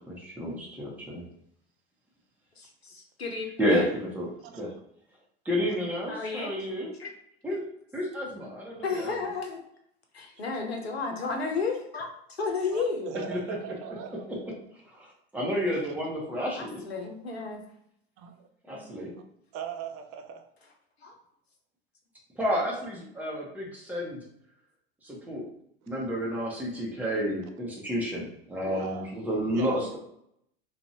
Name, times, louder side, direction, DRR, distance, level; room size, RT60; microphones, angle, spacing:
voice 1, 0.1-1.3 3.6-4.7 5.4-6.9 7.4-7.6 7.9-9.1 13.3-13.4 14.4-14.5 14.9-15.1 15.3-16.8 18.7-19.1 22.4-24.2 25.0-25.4 25.9-30.0, equal, 5° right, -3 dB, 0.9 m, -30 dB
voice 2, 2.6-3.9 6.1-6.5 7.0-7.1 8.8-9.6 10.1-12.1 12.4-13.1 16.5-17.6 18.7-18.9 21.0-21.2, left 4 dB, 90° left, 2 dB, 0.6 m, -32 dB
voice 3, 12.7-14.3 18.2-18.5 19.5-20.5 25.8-25.9 28.7-29.1 29.5-30.0, right 7 dB, 45° right, 5 dB, 0.5 m, -39 dB
2.5 x 2.3 x 2.7 m, 0.71 s
hypercardioid pair, 80°, 30 cm